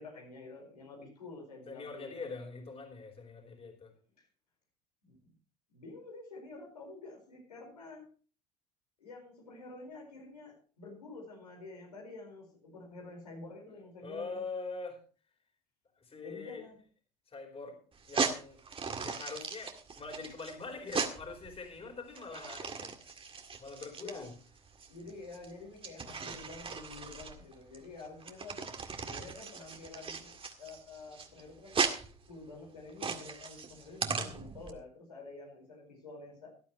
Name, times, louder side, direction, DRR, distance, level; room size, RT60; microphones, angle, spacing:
voice 1, 0.0-2.2 4.2-4.3 5.0-5.3 5.7-8.1 9.0-14.4 16.2-16.8 21.8-21.9 24.0-24.3 24.9-28.7 29.0-30.3 30.6-31.8 32.3-36.5, left 3 dB, 85° left, 0 dB, 4.6 m, -49 dB
voice 2, 1.7-3.9 14.0-15.0 16.0-16.6 17.3-17.8 18.1-18.6 19.0-22.9 23.6-24.3, left 4 dB, 30° left, 3 dB, 4.1 m, -43 dB
sound 1, 17.9-34.7, right 5 dB, 25° right, 2.0 m, -38 dB
17.5 x 11.5 x 3.0 m, 0.38 s
hypercardioid pair, 65°, 20 cm